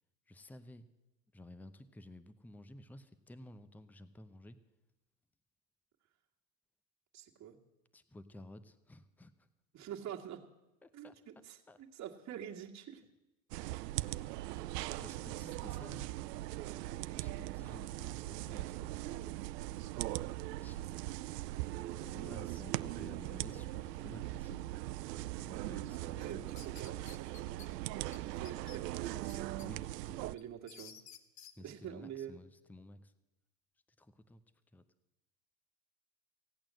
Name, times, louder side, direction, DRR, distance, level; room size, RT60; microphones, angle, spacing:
voice 1, 0.3-0.9 1.3-4.6 7.9-9.5 10.8-11.2 11.7-11.8 14.0-14.4 15.0-16.1 17.2-19.2 20.6-20.8 22.0-24.7 25.4-26.5 29.6-30.2 31.6-33.1 34.0-34.4 34.7-34.8, left 1 dB, 5° left, 13 dB, 0.7 m, -53 dB
voice 2, 7.1-7.6 9.7-10.5 10.9-13.0 16.8-17.2 20.5-21.0 22.0-22.5 25.9-29.7 30.2-31.0 31.6-32.4, right 10 dB, 35° right, 1 dB, 2.0 m, -47 dB
sound 1, 13.5-30.4, right 16 dB, 75° right, 0.6 m, -40 dB
sound 2, 26.2-27.7 28.1-28.2 28.5-29.7 30.1-31.5, left 8 dB, 35° left, 1.2 m, -54 dB
16.5 x 8.8 x 7.6 m, 1.0 s
hypercardioid pair, 100°, 49 cm